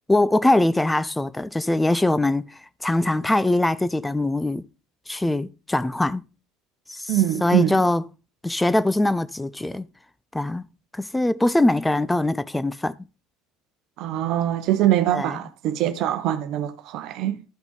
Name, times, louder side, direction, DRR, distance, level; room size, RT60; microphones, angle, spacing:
voice 1, 0.1-2.4 2.8-4.7 5.1-6.2 6.9-7.1 7.4-8.0 8.4-9.9 10.3-10.6 10.9-12.9 15.1-15.3, left 2 dB, 10° left, 0.5 m, -22 dB
voice 2, 7.1-7.8 14.0-17.4, right 12 dB, 50° right, 0.9 m, -23 dB
12.5 x 6.0 x 3.9 m
figure-of-eight pair, 65°, 0 cm